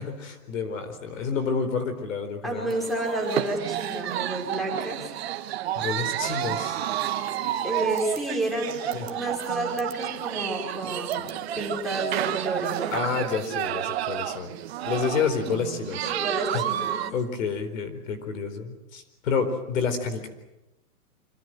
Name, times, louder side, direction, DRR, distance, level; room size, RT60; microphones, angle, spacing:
voice 1, 0.0-2.7 5.7-6.8 8.9-9.1 12.9-14.5 14.8-16.1 16.5-20.3, left 5 dB, 55° left, 9 dB, 4.5 m, -29 dB
voice 2, 2.4-5.2 7.6-12.9 16.0-17.1, right 2 dB, ahead, 0 dB, 4.8 m, -30 dB
sound 1, 2.7-17.1, right 12 dB, 40° right, 1.5 m, -31 dB
26.0 x 25.0 x 7.9 m, 0.95 s
hypercardioid pair, 160°, 47 cm